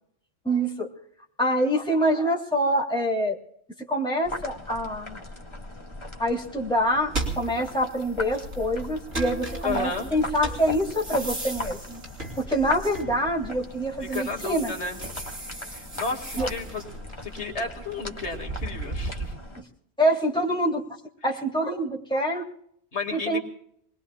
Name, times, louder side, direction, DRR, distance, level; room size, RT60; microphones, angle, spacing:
voice 1, 0.4-0.9 1.4-3.4 3.9-5.2 6.2-12.0 12.4-14.7 16.4-16.5 19.6-19.7 20.0-20.8 21.2-22.4 23.1-23.4, equal, 5° left, -3 dB, 3.0 m, -25 dB
sound 1, 4.2-19.6, left 1 dB, 25° left, 1.7 m, -39 dB
sound 2, 7.1-13.5 13.9-19.3, right 2 dB, 75° right, 4.0 m, -36 dB
voice 2, 9.6-10.1 14.0-15.0 15.7-16.8 17.2-19.3 22.9-23.4, left 4 dB, 70° left, 2 dB, 2.4 m, -32 dB
27.0 x 20.5 x 2.3 m, 0.69 s
omnidirectional pair, 1.2 m